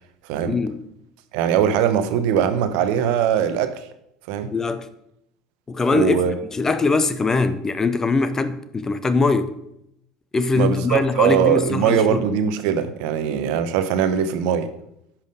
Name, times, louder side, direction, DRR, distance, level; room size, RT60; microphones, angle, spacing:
voice 1, 0.4-0.8 4.5-4.9 5.7-6.2 6.5-9.6 10.3-12.2, left 3 dB, 20° left, 0.7 m, -21 dB
voice 2, 1.3-3.7 4.3-4.5 5.9-6.3 10.6-14.7, right 8 dB, 55° right, 0.8 m, -21 dB
10.5 x 5.9 x 5.0 m
figure-of-eight pair, 65°, 2 cm